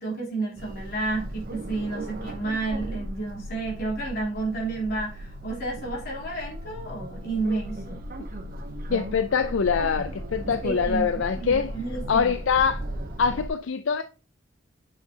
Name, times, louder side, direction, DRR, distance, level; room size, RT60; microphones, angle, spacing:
voice 1, 0.0-8.0 10.4-11.1 11.3-12.3, right 3 dB, 50° left, 3.6 m, -31 dB
sound 1, 0.6-13.5, equal, 50° right, 0.9 m, -36 dB
voice 2, 8.9-11.7 12.1-12.8 13.2-14.0, left 6 dB, 80° left, 0.5 m, -24 dB
8.6 x 5.7 x 2.8 m
head